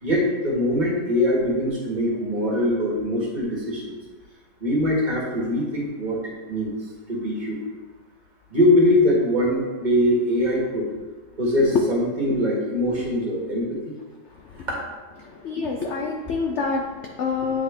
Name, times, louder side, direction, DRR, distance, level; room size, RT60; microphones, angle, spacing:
voice 1, 0.0-4.0 4.6-6.7 7.1-7.6 8.5-10.9 11.4-13.8 14.7-14.8, left 1 dB, 30° right, -4 dB, 1.5 m, -22 dB
voice 2, 15.2-17.6, left 5 dB, 80° left, 2 dB, 0.6 m, -27 dB
8.9 x 3.6 x 3.4 m, 1.4 s
omnidirectional pair, 1.8 m